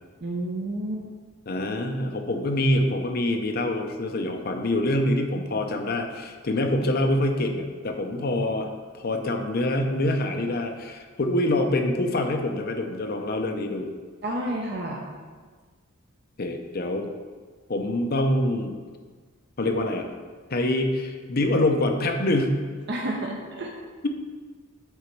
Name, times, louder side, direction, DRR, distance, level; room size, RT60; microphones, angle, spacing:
voice 1, 0.2-1.0 14.2-15.1 22.9-23.7, right 1 dB, 50° right, 0 dB, 0.7 m, -30 dB
voice 2, 1.5-8.7 8.9-13.9 16.4-17.1 17.7-18.7 19.6-20.1 20.5-22.6, left 1 dB, 45° left, 4 dB, 0.6 m, -25 dB
8.0 x 3.9 x 4.6 m, 1.5 s
head